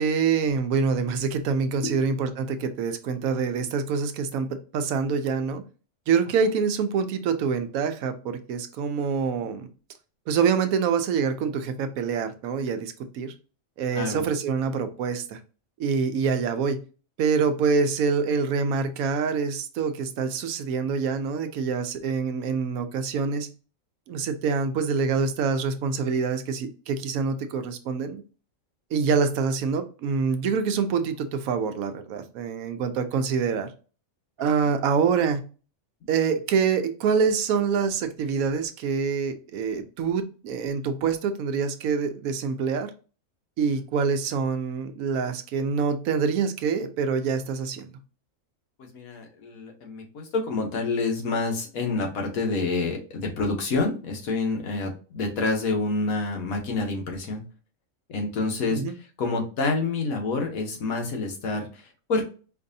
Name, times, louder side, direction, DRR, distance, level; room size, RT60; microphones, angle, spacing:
voice 1, 0.0-5.6 6.1-9.7 10.3-13.3 13.8-15.4 15.8-16.8 17.2-23.5 24.1-28.2 28.9-33.7 34.4-35.4 36.1-42.9 43.6-47.9 58.7-58.9, right 5 dB, 90° right, 9 dB, 1.0 m, -26 dB
voice 2, 13.9-14.3 48.8-57.4 58.1-58.8 59.2-62.2, left 3 dB, 90° left, 2 dB, 1.4 m, -28 dB
4.6 x 2.6 x 2.6 m, 0.36 s
omnidirectional pair, 1.4 m